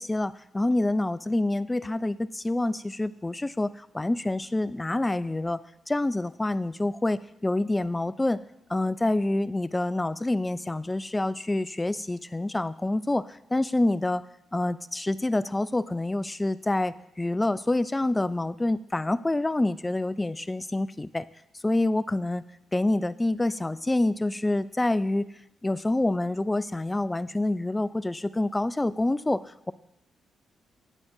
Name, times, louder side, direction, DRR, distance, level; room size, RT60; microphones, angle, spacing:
voice 1, 0.0-5.6 5.9-8.4 8.7-14.2 14.5-21.3 21.6-22.4 22.7-25.3 25.6-29.7, left 2 dB, 20° left, 17 dB, 0.3 m, -27 dB
9.9 x 8.4 x 2.7 m, 0.83 s
supercardioid pair, 55°, 0 cm